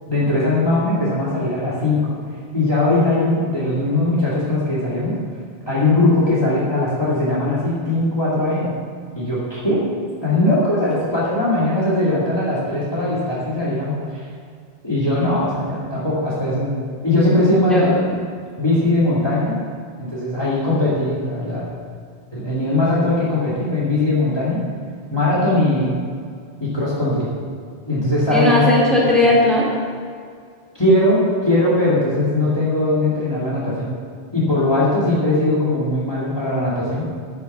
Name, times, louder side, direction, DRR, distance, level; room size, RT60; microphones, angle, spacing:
voice 1, 0.1-2.1 2.5-5.1 5.7-8.7 9.1-9.8 10.2-14.0 14.8-16.7 17.0-17.9 18.6-19.6 20.0-21.7 22.3-24.6 25.1-25.9 26.6-27.3 27.9-28.7 30.7-33.9 34.3-37.1, left 2 dB, 25° left, -8 dB, 2.8 m, -19 dB
voice 2, 17.6-18.2 28.3-29.7, left 1 dB, ahead, -6 dB, 3.2 m, -17 dB
11.0 x 10.5 x 5.8 m, 2.1 s
omnidirectional pair, 1.1 m